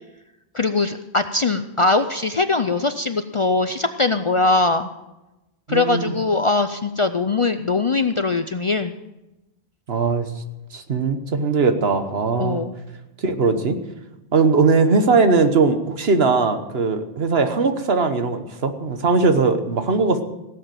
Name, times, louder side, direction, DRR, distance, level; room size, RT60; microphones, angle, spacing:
voice 1, 0.5-4.9 5.7-8.9 12.4-12.7, left 3 dB, 40° left, 9 dB, 0.5 m, -21 dB
voice 2, 5.7-6.1 9.9-10.3 10.7-12.6 13.2-13.8 14.3-20.2, right 4 dB, 70° right, 8 dB, 1.4 m, -19 dB
17.0 x 8.0 x 7.7 m, 0.99 s
omnidirectional pair, 1.1 m